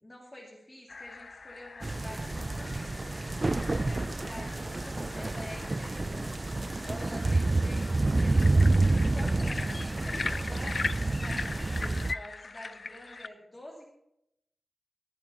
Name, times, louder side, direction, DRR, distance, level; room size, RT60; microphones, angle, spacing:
voice 1, 0.0-6.3 6.8-8.7 9.0-13.8, left 1 dB, 25° left, -2 dB, 2.6 m, -48 dB
sound 1, 0.9-13.3, left 4 dB, 55° left, 0.5 m, -40 dB
sound 2, 1.8-12.1, right 2 dB, 30° right, 0.3 m, -28 dB
22.5 x 9.1 x 3.0 m, 0.80 s
wide cardioid pair, 115°, 0 cm